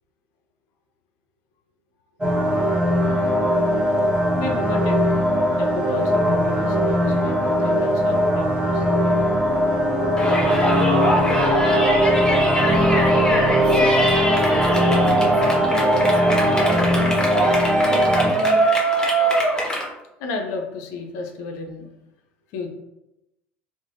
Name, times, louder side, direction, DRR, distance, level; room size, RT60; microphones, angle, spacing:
sound 1, 2.2-18.3, equal, 15° right, 0.9 m, -20 dB
voice 1, 4.4-5.1 5.4-8.9 10.5-10.7 20.2-21.9 22.5-22.7, left 3 dB, 60° left, 3 dB, 0.4 m, -32 dB
Yell, 10.2-19.8, right 1 dB, 10° left, 0.7 m, -23 dB
voice 2, 12.6-17.2 17.9-18.6, right 3 dB, 50° right, 6 dB, 0.4 m, -31 dB
3.1 x 2.1 x 2.5 m, 0.91 s
figure-of-eight pair, 60°, 6 cm